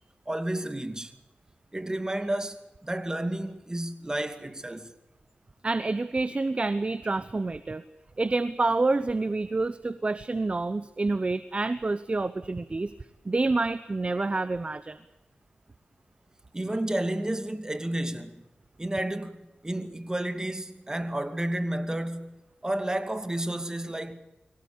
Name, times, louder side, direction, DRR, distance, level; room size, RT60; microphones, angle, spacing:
voice 1, 0.3-1.1 1.7-4.9 16.5-18.4 18.8-24.2, right 1 dB, 20° right, 2.5 m, -31 dB
voice 2, 5.6-7.8 8.2-12.9 13.2-15.0, right 3 dB, 35° right, 1.0 m, -28 dB
24.5 x 17.5 x 8.6 m
cardioid pair, 55°, 3 cm